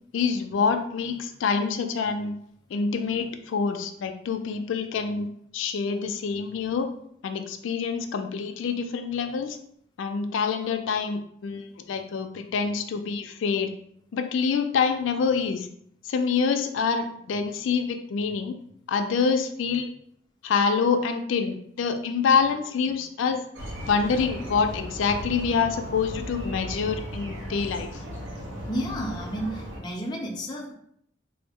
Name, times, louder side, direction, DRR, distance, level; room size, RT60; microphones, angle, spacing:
voice 1, 0.1-2.4 2.7-5.3 5.5-6.9 7.2-9.6 10.0-13.7 14.1-15.7 16.0-18.6 18.9-19.9 20.4-23.4 23.8-27.9, left 5 dB, 85° left, 6 dB, 0.3 m, -26 dB
sound 1, 23.5-29.8, equal, 90° right, 0.8 m, -36 dB
voice 2, 28.7-30.7, equal, 20° left, 0 dB, 0.4 m, -31 dB
3.6 x 2.0 x 3.4 m, 0.69 s
head